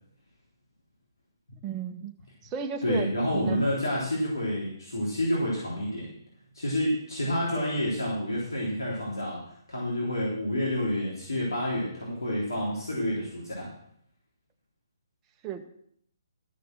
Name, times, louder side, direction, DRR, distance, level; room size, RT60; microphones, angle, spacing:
voice 1, 1.6-2.1 2.4-3.6 15.4-15.7, right 7 dB, 20° right, 4 dB, 1.2 m, -34 dB
voice 2, 2.8-6.1 6.5-9.4 9.7-13.7, equal, 75° left, -5 dB, 3.5 m, -29 dB
13.0 x 6.6 x 6.3 m, 0.69 s
figure-of-eight pair, 135°, 2 cm